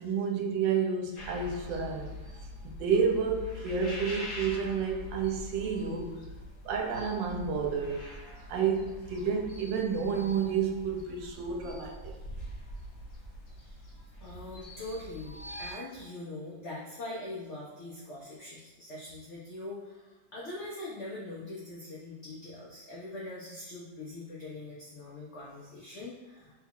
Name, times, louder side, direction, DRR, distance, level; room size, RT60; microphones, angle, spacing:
voice 1, 0.0-2.1 2.6-6.2 6.6-12.1, right 6 dB, 85° right, 2 dB, 1.3 m, -30 dB
sound 1, 1.2-15.7, left 1 dB, 60° left, 0.9 m, -44 dB
voice 2, 14.2-26.5, left 2 dB, 90° left, -5 dB, 0.6 m, -42 dB
3.2 x 2.3 x 3.4 m, 1.2 s
omnidirectional pair, 1.9 m